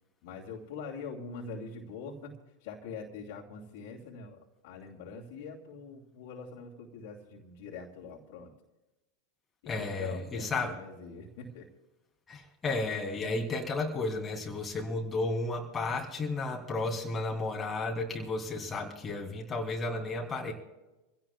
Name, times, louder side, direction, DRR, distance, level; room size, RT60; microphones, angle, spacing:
voice 1, 0.2-8.5 9.6-11.7, left 5 dB, 60° left, 0 dB, 2.8 m, -43 dB
voice 2, 9.7-10.7 12.3-20.5, left 2 dB, 20° left, -1 dB, 3.1 m, -33 dB
27.5 x 16.5 x 2.4 m, 1.0 s
hypercardioid pair, 90°, 0 cm